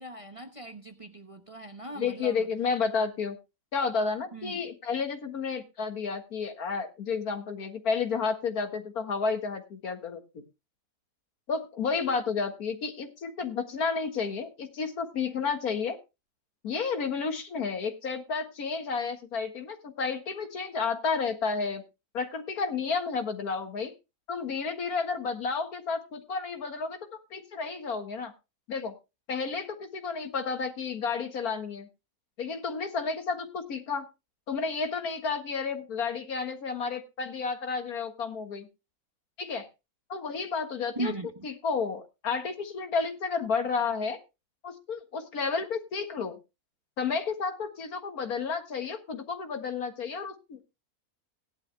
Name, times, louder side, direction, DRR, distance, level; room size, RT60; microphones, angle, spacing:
voice 1, 0.0-2.5 4.3-4.6 41.0-41.3, right 2 dB, 30° right, 0.8 m, -38 dB
voice 2, 2.0-3.4 3.7-10.4 11.5-16.0 16.6-21.8 22.1-23.9 24.3-28.3 28.7-28.9 29.3-31.9 32.4-34.1 34.5-38.7 39.4-39.7 40.1-41.1 41.4-44.2 44.6-46.4 47.0-50.6, left 5 dB, 80° left, 2.2 m, -31 dB
18.0 x 11.0 x 2.2 m
omnidirectional pair, 1.6 m